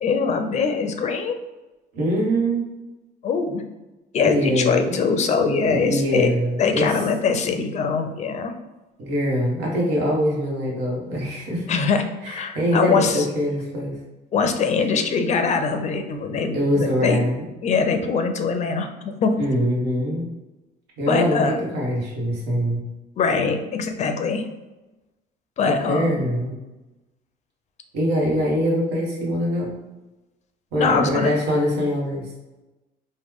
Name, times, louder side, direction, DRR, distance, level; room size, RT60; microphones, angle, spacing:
voice 1, 0.0-1.4 3.2-3.6 4.1-6.3 6.6-8.5 11.7-13.3 14.3-17.2 17.6-19.4 21.1-21.6 23.2-24.5 25.6-26.2 30.8-31.3, left 5 dB, 45° left, 7 dB, 0.4 m, -22 dB
voice 2, 1.9-2.6 4.2-4.9 5.6-6.9 9.0-11.7 12.2-14.0 16.5-17.4 19.4-20.2 21.0-22.8 25.6-26.5 27.9-29.8 30.7-32.3, equal, 85° right, -2 dB, 1.1 m, -23 dB
3.1 x 2.1 x 3.5 m, 1.1 s
cardioid pair, 110°, 17 cm